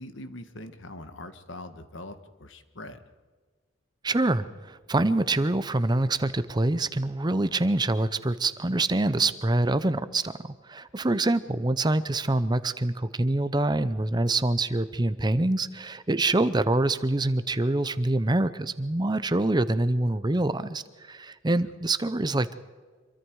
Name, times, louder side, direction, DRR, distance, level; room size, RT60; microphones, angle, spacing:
voice 1, 0.0-3.0, left 1 dB, 65° left, 9 dB, 1.6 m, -42 dB
voice 2, 4.0-22.5, right 2 dB, 20° right, 13 dB, 0.6 m, -25 dB
26.5 x 23.0 x 4.8 m, 1.5 s
head